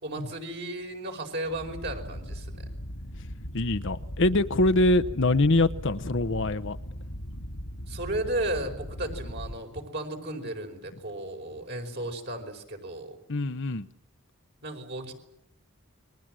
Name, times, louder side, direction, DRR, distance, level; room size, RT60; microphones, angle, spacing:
voice 1, 0.0-2.5 7.9-13.2 14.6-15.1, right 1 dB, 55° right, 5.0 m, -34 dB
sound 1, 1.4-9.6, equal, 90° left, 2.2 m, -38 dB
voice 2, 3.5-6.8 13.3-13.9, left 2 dB, 60° left, 1.0 m, -24 dB
29.5 x 22.5 x 7.7 m
head